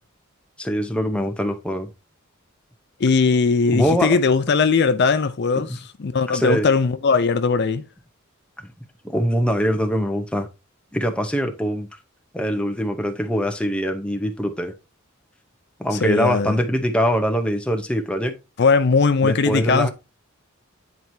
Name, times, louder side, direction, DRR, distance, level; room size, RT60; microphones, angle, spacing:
voice 1, 0.6-1.9 3.7-4.2 5.7-5.8 6.3-6.7 9.0-10.5 10.9-11.9 12.3-14.7 15.8-18.4 19.2-19.9, equal, 5° left, 0.8 m, -23 dB
voice 2, 3.0-7.8 15.9-16.6 18.6-19.9, left 4 dB, 55° left, 0.5 m, -19 dB
9.1 x 4.6 x 2.7 m
head